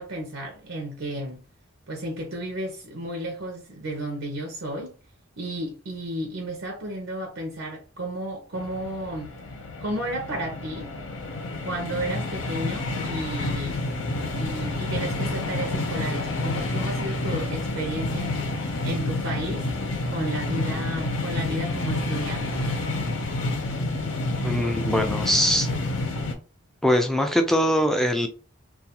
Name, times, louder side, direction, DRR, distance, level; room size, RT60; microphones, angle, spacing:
voice 1, 0.0-1.4 1.9-4.9 5.4-9.3 9.8-10.9 11.6-13.8 14.4-18.3 18.8-19.7 20.1-22.7, right 1 dB, 75° right, 0.6 m, -33 dB
sound 1, 8.5-26.3, left 2 dB, 80° left, 0.6 m, -29 dB
voice 2, 24.4-25.7 26.8-28.3, equal, ahead, 0.3 m, -22 dB
2.3 x 2.3 x 2.8 m
head